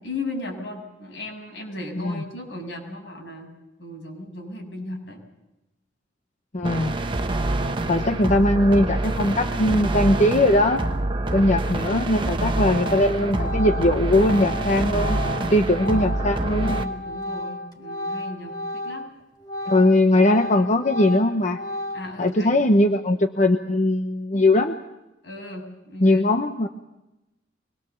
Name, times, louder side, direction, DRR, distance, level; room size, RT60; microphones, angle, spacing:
voice 1, 0.0-3.5 3.8-5.2 7.5-7.8 11.2-11.6 12.0-12.6 16.7-19.1 21.9-22.5 25.2-26.2, left 2 dB, 75° left, 1 dB, 6.9 m, -36 dB
voice 2, 6.5-7.0 7.9-10.8 11.3-15.2 15.5-16.8 19.7-21.6 22.2-24.7 26.0-26.7, left 1 dB, 40° left, 6 dB, 0.9 m, -20 dB
sound 1, 6.6-16.8, right 2 dB, 25° right, 1.2 m, -26 dB
Organ, 12.2-12.5 12.8-19.1 19.4-22.3, left 1 dB, 25° left, 2.2 m, -33 dB
24.0 x 21.5 x 7.0 m, 0.96 s
head